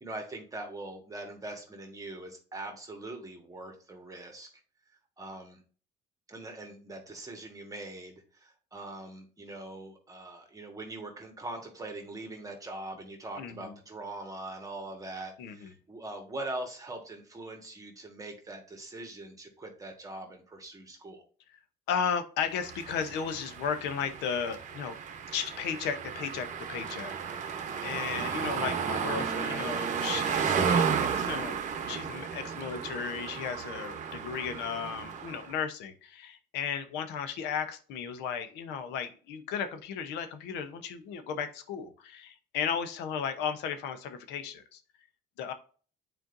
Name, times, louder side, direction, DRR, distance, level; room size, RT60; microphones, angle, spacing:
voice 1, 0.0-4.5 4.9-5.6 6.3-21.2, right 2 dB, 20° right, 3 dB, 1.5 m, -42 dB
voice 2, 13.4-13.8 15.4-15.7 21.9-25.0 25.3-31.6 31.9-44.8 45.4-45.5, left 7 dB, 90° left, 9 dB, 0.9 m, -35 dB
sound 1, 22.6-35.6, right 7 dB, 45° right, 0.9 m, -33 dB
8.9 x 4.4 x 2.6 m, 0.41 s
cardioid pair, 110°, 17 cm